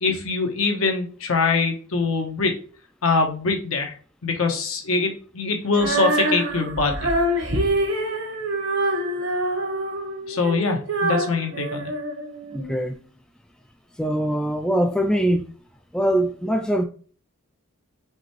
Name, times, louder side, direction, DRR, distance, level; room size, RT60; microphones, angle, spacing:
voice 1, 0.0-2.5 3.0-3.9 4.2-7.1 10.3-11.9, left 4 dB, 80° left, 1.1 m, -23 dB
Female singing, 5.7-12.8, right 1 dB, 60° right, 1.0 m, -25 dB
voice 2, 12.5-13.0 14.0-15.5 15.9-16.8, right 1 dB, 5° left, 0.3 m, -22 dB
4.9 x 3.4 x 3.1 m
head